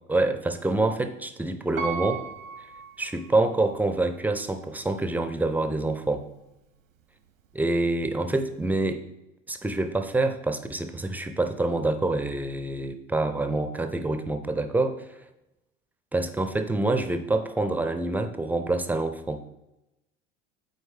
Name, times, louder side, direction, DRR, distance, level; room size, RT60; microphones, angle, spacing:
voice 1, 0.1-2.2 3.0-6.2 7.5-9.0 9.5-15.1 16.1-19.4, right 2 dB, 5° right, 8 dB, 0.4 m, -26 dB
Piano, 1.8-3.7 4.3-4.4, right 6 dB, 80° right, 0.9 m, -36 dB
9.3 x 4.4 x 3.3 m, 0.93 s
figure-of-eight pair, 75°, 38 cm